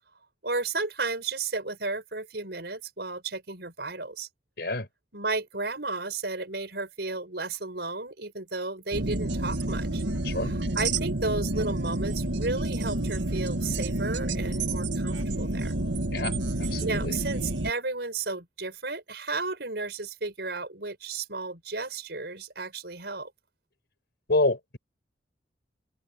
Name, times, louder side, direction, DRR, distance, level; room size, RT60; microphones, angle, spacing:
voice 1, 0.4-4.3 5.1-10.0 10.3-15.7 16.8-23.3, right 3 dB, 60° right, 6.4 m, -33 dB
voice 2, 4.6-4.9 10.2-10.5 16.1-17.2 24.3-24.8, left 2 dB, 60° left, 4.6 m, -28 dB
sound 1, 8.9-17.7, right 2 dB, 85° right, 1.8 m, -29 dB
open air
head